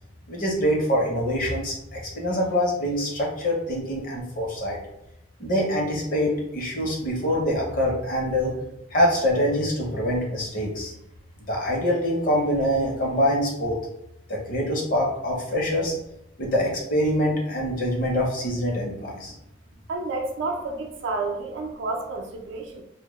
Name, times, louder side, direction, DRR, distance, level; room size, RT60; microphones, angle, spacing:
voice 1, 0.3-4.8 5.4-8.5 8.9-10.9 11.5-13.8 14.3-15.9 16.4-19.3, equal, 45° left, -1 dB, 0.6 m, -25 dB
voice 2, 19.9-22.8, right 3 dB, 75° right, 2 dB, 0.4 m, -30 dB
2.1 x 2.0 x 2.9 m, 0.81 s
head